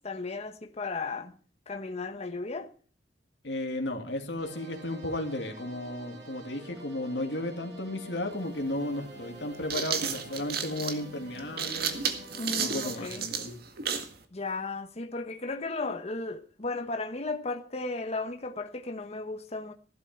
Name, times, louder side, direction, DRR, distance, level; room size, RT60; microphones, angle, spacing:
voice 1, 0.0-1.3 1.7-2.7 12.4-13.3 14.3-19.7, left 3 dB, 35° left, 1.1 m, -35 dB
voice 2, 3.4-12.0 12.6-13.5, left 1 dB, 80° left, 2.7 m, -34 dB
sound 1, 4.4-13.1, right 1 dB, 90° right, 6.1 m, -47 dB
sound 2, 8.3-8.4 9.4-14.2, right 6 dB, 60° right, 1.9 m, -32 dB
15.5 x 12.0 x 4.5 m
head